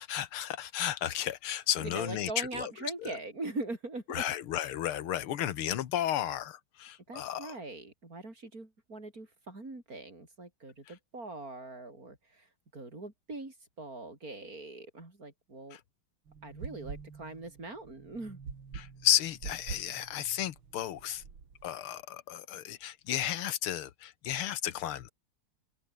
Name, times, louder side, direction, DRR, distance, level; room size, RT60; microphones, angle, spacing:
voice 1, 0.0-2.7 3.0-3.2 4.1-7.5 15.7-15.8 18.7-21.2 21.6-25.1, left 11 dB, 85° left, 2.0 m, -33 dB
voice 2, 1.8-4.2 7.1-15.8 16.4-18.4, right 2 dB, 40° right, 5.7 m, -42 dB
sound 1, 16.3-21.7, right 5 dB, 70° right, 3.5 m, -46 dB
open air
omnidirectional pair, 2.3 m